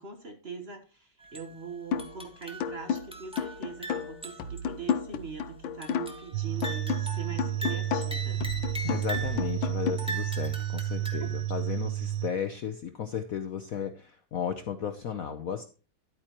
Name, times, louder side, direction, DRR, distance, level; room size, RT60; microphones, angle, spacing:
voice 1, 0.0-8.4 11.2-11.4, right 5 dB, 35° right, 4 dB, 1.3 m, -42 dB
sound 1, 1.2-1.5 2.0-4.6 4.9-5.0 5.8-6.3 6.6-9.5 10.0-11.4, right 2 dB, 5° right, 1.2 m, -40 dB
sound 2, 1.9-2.2 2.6-6.3 6.6-9.9, left 6 dB, 80° left, 1.6 m, -33 dB
sound 3, 6.3-12.3, right 12 dB, 70° right, 1.2 m, -31 dB
voice 2, 8.8-15.7, left 8 dB, 60° left, 7 dB, 1.0 m, -34 dB
11.5 x 8.8 x 3.0 m, 0.34 s
omnidirectional pair, 2.2 m